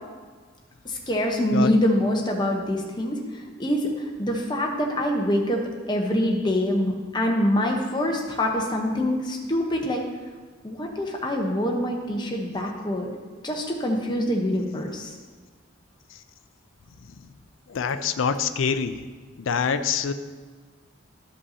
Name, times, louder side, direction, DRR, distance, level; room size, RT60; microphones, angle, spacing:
voice 1, 0.8-3.2 3.6-5.6 5.9-10.0 10.6-13.1 13.4-15.1, left 1 dB, 20° left, 1 dB, 0.9 m, -25 dB
voice 2, 17.7-18.9 19.4-20.1, left 6 dB, 80° left, 10 dB, 0.4 m, -25 dB
12.5 x 5.4 x 2.8 m, 1.5 s
head